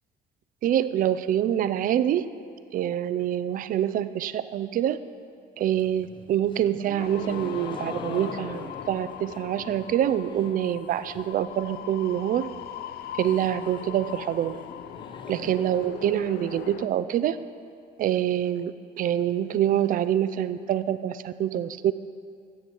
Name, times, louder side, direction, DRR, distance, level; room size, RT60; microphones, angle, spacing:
voice 1, 0.6-2.3 2.7-5.0 5.6-12.5 13.2-14.5 15.3-17.4 18.0-21.9, right 11 dB, 55° right, 14 dB, 0.5 m, -26 dB
sound 1, 5.7-10.7 11.0-11.5 11.8-11.9 12.2-12.3 12.6-16.6, left 4 dB, 30° left, 0.8 m, -43 dB
sound 2, 7.0-16.9, left 10 dB, 70° left, 0.5 m, -40 dB
13.5 x 8.0 x 4.5 m, 2.3 s
cardioid pair, 110°, 17 cm